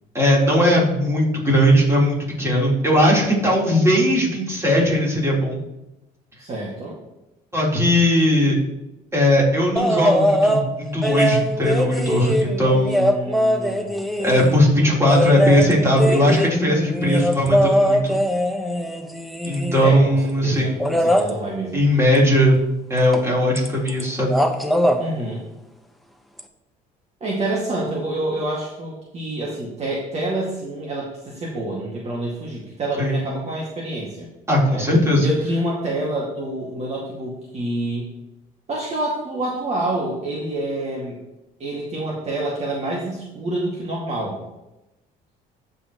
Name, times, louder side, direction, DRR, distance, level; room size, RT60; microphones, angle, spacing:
voice 1, 0.1-5.6 7.5-8.6 9.1-13.2 14.2-18.2 19.5-20.8 21.7-22.6 22.9-24.3 33.0-33.2 34.5-35.3, equal, 15° right, -4 dB, 3.8 m, -18 dB
voice 2, 6.4-6.9 12.9-14.4 14.8-15.1 19.8-21.8 25.0-25.4 27.2-34.3 34.7-34.8 35.2-38.1 38.7-41.2 41.6-44.4, right 1 dB, 40° right, -4 dB, 2.1 m, -27 dB
sound 1, 9.8-10.7 11.0-14.6 15.1-19.9 20.8-21.3 23.1-23.3 23.6-24.0 24.3-25.0 26.4-26.5, equal, ahead, 1.0 m, -21 dB
15.0 x 5.8 x 3.1 m, 0.93 s
cardioid pair, 110°, 17 cm